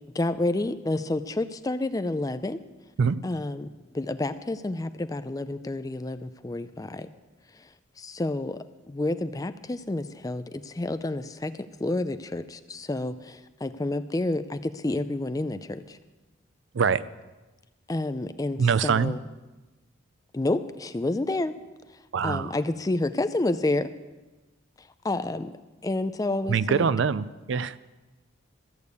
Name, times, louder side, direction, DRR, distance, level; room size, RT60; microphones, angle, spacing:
voice 1, 0.1-2.6 3.2-3.7 3.9-7.1 7.6-7.7 8.0-11.5 11.8-16.0 17.9-19.2 20.3-21.5 22.2-23.9 24.8-25.5 25.8-26.9, left 2 dB, 15° left, 12 dB, 0.4 m, -29 dB
voice 2, 18.6-19.1 22.1-22.6 26.5-27.8, right 6 dB, 60° right, 17 dB, 0.4 m, -24 dB
14.0 x 6.7 x 8.2 m, 1.1 s
head